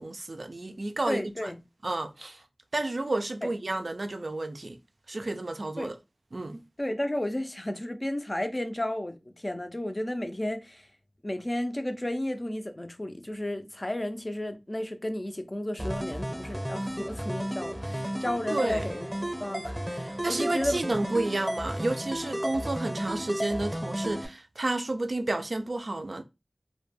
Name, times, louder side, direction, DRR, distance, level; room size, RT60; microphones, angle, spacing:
voice 1, 0.0-1.5 1.8-2.4 2.7-4.8 5.1-5.9 6.3-6.6 18.5-18.9 20.2-26.2, right 2 dB, 70° right, 0.3 m, -31 dB
voice 2, 1.1-1.6 5.8-5.9 6.8-10.9 11.2-19.1 19.4-20.9, left 1 dB, 35° left, 0.4 m, -33 dB
sound 1, 15.8-24.3, equal, 5° right, 0.7 m, -33 dB
2.2 x 2.1 x 3.1 m
wide cardioid pair, 55°, 0 cm